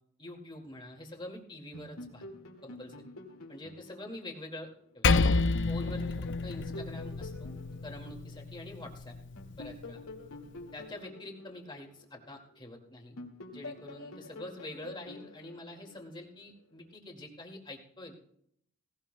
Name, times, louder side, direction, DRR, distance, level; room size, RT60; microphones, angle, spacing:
voice 1, 0.2-2.3 2.6-3.0 3.5-5.1 5.7-7.5 7.8-9.2 9.6-10.0 10.7-13.2 13.5-18.1, left 1 dB, 20° left, 1 dB, 2.1 m, -45 dB
sound 1, 1.7-5.1 5.5-8.8 9.4-12.7 13.2-16.4, left 2 dB, 85° left, 2.1 m, -47 dB
Percussion, 5.0-9.8, left 4 dB, 55° left, 0.5 m, -30 dB
17.5 x 17.0 x 2.2 m, 0.70 s
head